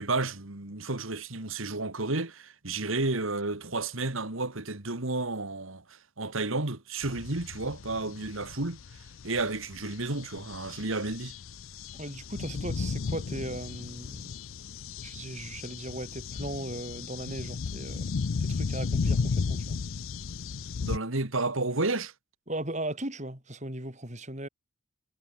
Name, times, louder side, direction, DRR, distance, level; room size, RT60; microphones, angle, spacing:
voice 1, 0.0-8.8 9.2-11.4 20.8-22.1, right 2 dB, 75° right, 2.4 m, -31 dB
sound 1, 7.0-21.0, left 5 dB, 70° left, 0.5 m, -34 dB
voice 2, 11.9-14.3 15.0-18.1 18.4-19.8 22.5-24.5, right 1 dB, 35° right, 4.9 m, -37 dB
head